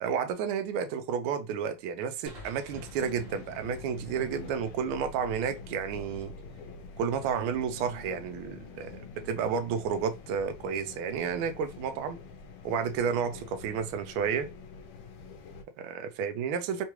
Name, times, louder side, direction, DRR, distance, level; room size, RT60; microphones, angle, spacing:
voice 1, 0.0-6.3 7.0-9.0 9.2-12.2 12.6-14.5 15.8-16.8, right 7 dB, 75° right, 1.4 m, -31 dB
sound 1, 2.3-5.7, equal, 60° right, 0.6 m, -52 dB
sound 2, 2.7-15.6, left 4 dB, 75° left, 1.2 m, -46 dB
3.7 x 2.3 x 3.0 m
omnidirectional pair, 2.4 m